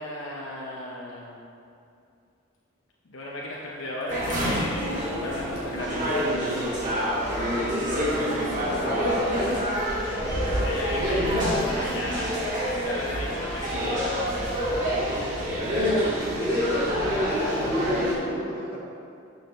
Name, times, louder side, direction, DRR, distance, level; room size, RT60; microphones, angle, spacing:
voice 1, 0.0-1.4 3.1-6.0 10.6-12.4 12.7-14.1, left 1 dB, 80° left, -4 dB, 0.8 m, -35 dB
sound 1, 4.1-18.1, equal, 40° right, 1.8 m, -27 dB
voice 2, 8.8-9.6 16.4-18.8, left 1 dB, 50° left, -7 dB, 1.9 m, -29 dB
8.7 x 6.5 x 3.2 m, 2.5 s
head